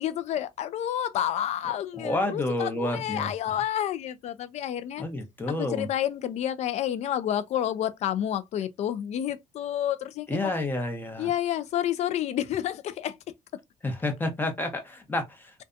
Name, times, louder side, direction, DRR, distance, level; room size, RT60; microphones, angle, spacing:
voice 1, 0.0-5.0 5.6-10.5 11.2-13.2, left 11 dB, 60° left, 0.4 m, -29 dB
voice 2, 2.0-3.3 5.0-5.9 10.3-11.3 13.8-15.6, left 2 dB, 15° left, 0.8 m, -30 dB
2.5 x 2.2 x 2.5 m
cardioid pair, 110°, 13 cm